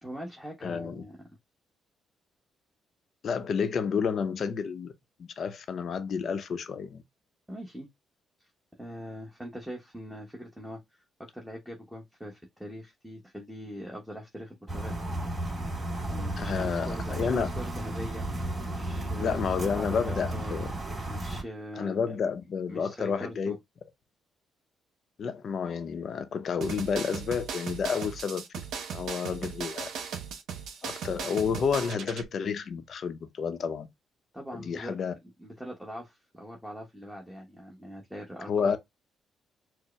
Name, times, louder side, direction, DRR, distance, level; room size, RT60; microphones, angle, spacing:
voice 1, 0.0-1.1 7.5-7.9 8.8-11.0 11.3-15.0 16.1-18.3 18.7-20.6 21.1-22.3 22.7-23.6 34.3-34.9 35.4-38.8, equal, ahead, 1.1 m, -42 dB
voice 2, 0.6-1.0 3.2-4.9 5.2-7.0 16.4-17.5 19.2-20.7 21.8-23.6 25.2-28.4 28.9-29.9 30.8-33.9 34.6-35.1 38.5-38.8, left 6 dB, 55° left, 0.7 m, -30 dB
sound 1, 14.7-21.4, right 1 dB, 25° right, 2.4 m, -33 dB
sound 2, 26.6-32.2, right 7 dB, 75° right, 0.9 m, -37 dB
4.6 x 2.1 x 3.1 m
cardioid pair, 90°, 0 cm